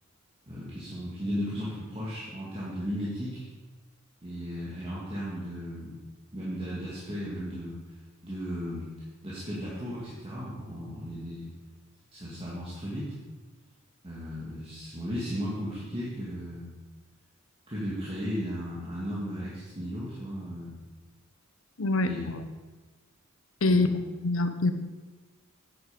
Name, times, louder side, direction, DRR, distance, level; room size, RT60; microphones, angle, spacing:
voice 1, 0.5-3.4 4.2-6.0 6.3-7.8 8.2-8.9 9.2-11.5 12.1-13.1 14.0-16.8 17.7-20.7 22.0-22.4 23.7-23.9, equal, 25° right, -8 dB, 2.2 m, -35 dB
voice 2, 21.8-22.2 23.6-23.9 24.2-24.7, left 2 dB, 65° left, 9 dB, 0.8 m, -24 dB
9.3 x 8.9 x 5.3 m, 1.2 s
head